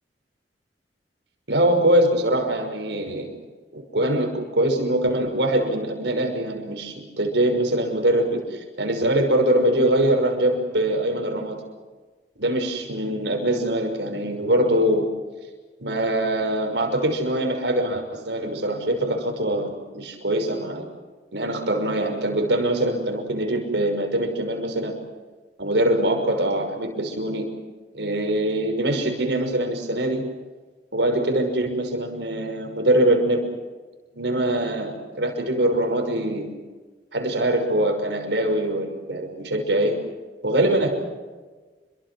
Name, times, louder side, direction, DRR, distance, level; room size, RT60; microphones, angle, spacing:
voice 1, 1.5-3.3 3.7-4.3 4.6-11.6 12.4-15.1 15.8-20.9 21.3-25.0 25.6-27.5 27.9-30.2 30.9-33.5 34.1-36.5 37.1-39.9 40.4-40.9, right 1 dB, 75° right, 3 dB, 5.9 m, -23 dB
29.5 x 24.0 x 6.3 m, 1.3 s
head